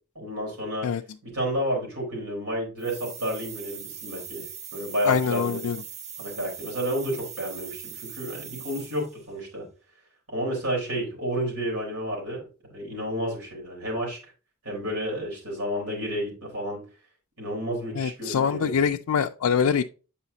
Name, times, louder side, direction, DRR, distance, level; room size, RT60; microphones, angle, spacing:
voice 1, 0.1-0.9 1.2-5.6 6.2-9.7 10.3-14.2 14.6-16.8 17.4-18.9, equal, 80° right, 4.2 m, -31 dB
sound 1, 2.8-9.2, right 7 dB, 30° right, 0.5 m, -41 dB
voice 2, 5.1-5.8 18.0-19.8, left 7 dB, 70° left, 0.4 m, -24 dB
8.2 x 5.6 x 2.8 m
head